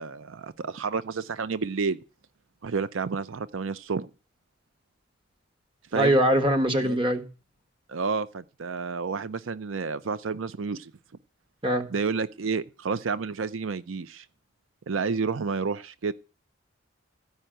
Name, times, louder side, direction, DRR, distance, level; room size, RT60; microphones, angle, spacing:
voice 1, 0.0-2.0 2.6-4.1 5.9-6.1 6.8-7.0 7.9-10.9 11.9-14.3 14.9-16.1, right 5 dB, 80° right, 0.5 m, -30 dB
voice 2, 5.9-7.2 11.6-11.8, equal, 25° right, 1.5 m, -22 dB
14.5 x 5.5 x 9.0 m
head